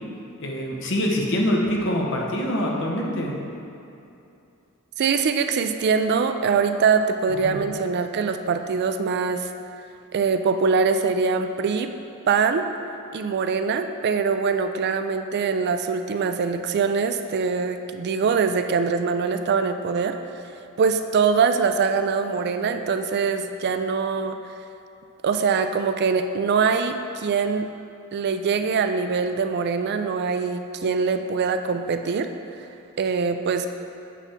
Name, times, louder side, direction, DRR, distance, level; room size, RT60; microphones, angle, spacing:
voice 1, 0.4-3.3 7.4-7.6, equal, 55° left, -1 dB, 1.0 m, -24 dB
voice 2, 5.0-9.5 10.1-11.9 12.3-12.6 13.1-20.4 20.8-24.4 25.2-27.7 28.1-32.3 33.0-33.7, right 5 dB, 50° right, 8 dB, 0.3 m, -23 dB
8.4 x 3.4 x 5.7 m, 2.7 s
head